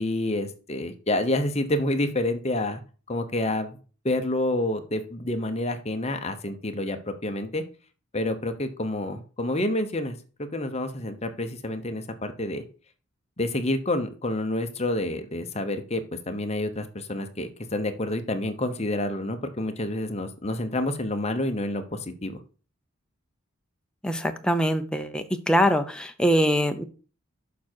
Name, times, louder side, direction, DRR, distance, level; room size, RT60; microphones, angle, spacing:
voice 1, 0.0-2.8 3.1-3.8 4.0-7.6 8.1-12.6 13.4-22.4, left 1 dB, 30° left, 7 dB, 0.9 m, -28 dB
voice 2, 24.0-26.8, equal, 5° left, 6 dB, 0.6 m, -23 dB
7.2 x 5.9 x 4.5 m, 0.37 s
head